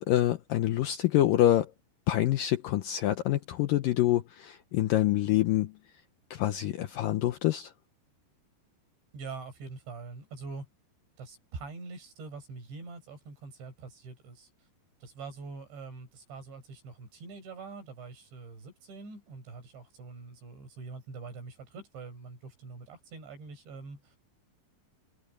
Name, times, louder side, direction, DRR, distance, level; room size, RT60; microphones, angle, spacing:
voice 1, 0.0-1.7 2.1-5.7 6.3-7.7, left 13 dB, 80° left, 2.0 m, -26 dB
voice 2, 9.1-10.7 11.2-14.5 15.0-24.2, right 4 dB, 85° right, 9.4 m, -44 dB
omnidirectional pair, 5.0 m